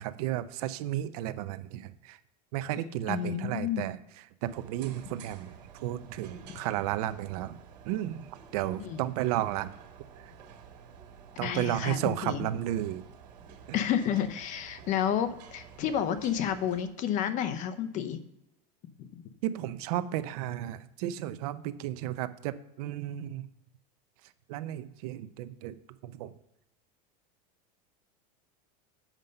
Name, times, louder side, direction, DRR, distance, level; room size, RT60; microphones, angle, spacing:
voice 1, 0.0-2.2 2.5-4.0 4.4-5.5 5.8-7.6 7.9-8.3 8.5-9.7 11.4-13.0 13.7-13.8 19.4-23.5 24.5-25.7 26.0-26.3, right 13 dB, 65° right, 13 dB, 0.7 m, -33 dB
voice 2, 3.1-3.9 8.8-9.0 11.4-12.4 13.7-18.2 19.0-19.2, left 9 dB, 40° left, 11 dB, 0.7 m, -30 dB
sound 1, 4.4-16.8, right 7 dB, 80° right, 1.8 m, -51 dB
7.4 x 5.3 x 6.6 m, 0.87 s
supercardioid pair, 145°, 20 cm